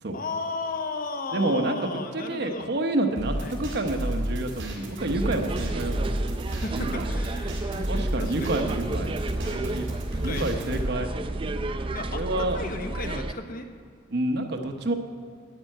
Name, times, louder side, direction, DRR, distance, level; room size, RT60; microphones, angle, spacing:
voice 1, 0.1-2.7 3.4-3.6 6.5-8.6 10.1-10.9 11.9-13.7, left 3 dB, 50° left, 6 dB, 0.9 m, -35 dB
voice 2, 1.3-6.2 6.7-7.1 7.9-9.9 10.2-11.1 12.1-12.6 14.1-14.9, right 2 dB, 60° right, 5 dB, 1.0 m, -29 dB
sound 1, 3.2-10.8, right 1 dB, 80° right, 3.1 m, -32 dB
sound 2, 5.0-13.3, right 2 dB, 30° right, 0.5 m, -31 dB
12.0 x 5.5 x 9.0 m, 2.1 s
head